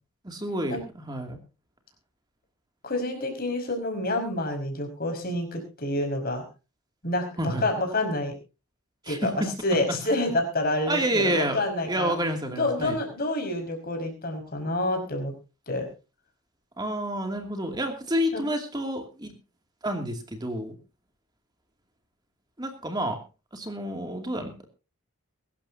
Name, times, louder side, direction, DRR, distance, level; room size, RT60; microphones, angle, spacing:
voice 1, 0.2-1.4 7.4-7.7 9.0-9.5 10.1-10.2 10.9-13.0 16.8-19.3 19.8-20.8 22.6-23.2 23.5-24.7, right 1 dB, 20° right, 4 dB, 2.5 m, -29 dB
voice 2, 2.8-6.4 7.0-8.3 9.1-9.3 9.6-12.1 12.5-15.3 15.7-15.9 18.3-18.4, left 1 dB, 40° left, 4 dB, 5.4 m, -28 dB
23.0 x 12.5 x 2.8 m, 0.32 s
head